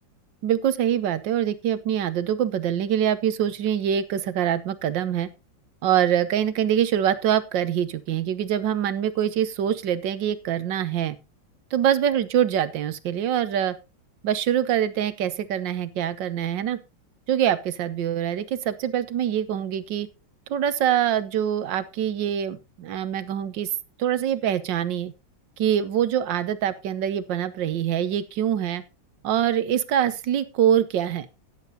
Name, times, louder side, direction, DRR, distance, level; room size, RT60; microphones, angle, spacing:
voice 1, 0.4-5.3 5.8-11.2 11.7-13.8 14.2-16.8 17.3-20.1 20.5-23.7 24.0-25.1 25.6-28.8 29.2-31.3, right 10 dB, 70° right, 14 dB, 1.6 m, -24 dB
15.0 x 10.5 x 2.8 m, 0.27 s
omnidirectional pair, 2.1 m